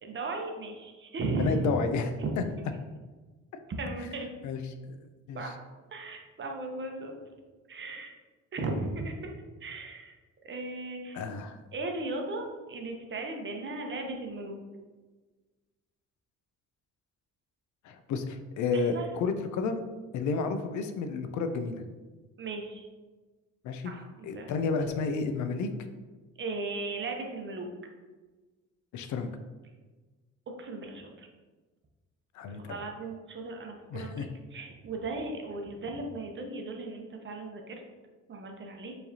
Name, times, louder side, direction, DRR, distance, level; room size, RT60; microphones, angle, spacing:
voice 1, 0.0-1.6 2.2-2.3 3.8-4.3 5.3-5.5 5.9-7.1 7.7-8.1 8.5-9.3 9.6-10.1 10.4-11.2 11.7-14.6 18.9-19.1 22.4-22.9 23.8-24.5 26.4-27.7 30.5-31.3 32.6-34.3 34.5-37.8 38.3-39.0, right 2 dB, 40° right, 3 dB, 0.7 m, -36 dB
voice 2, 1.4-2.1 2.4-2.5 4.4-5.5 11.1-11.6 17.8-19.8 20.1-21.8 23.6-23.9 24.2-25.7 28.9-29.3 32.3-32.8 33.9-34.3, left 4 dB, 70° left, 8 dB, 0.5 m, -31 dB
4.7 x 3.2 x 2.7 m, 1.3 s
cardioid pair, 90°, 30 cm